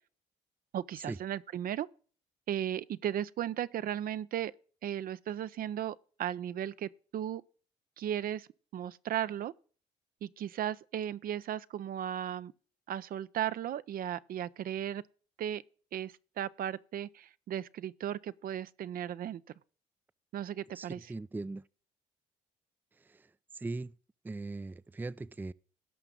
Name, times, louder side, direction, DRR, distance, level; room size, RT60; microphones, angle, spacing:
voice 1, 0.7-1.9 2.5-4.5 4.8-7.4 8.0-8.5 8.7-9.5 10.2-12.5 12.9-15.0 15.4-15.6 15.9-19.4 20.3-21.1, right 10 dB, 60° right, 0.5 m, -36 dB
voice 2, 20.7-21.6 23.0-23.3 23.5-24.0 24.2-25.5, right 3 dB, 10° right, 0.4 m, -39 dB
17.0 x 5.9 x 3.7 m
supercardioid pair, 65°, 17 cm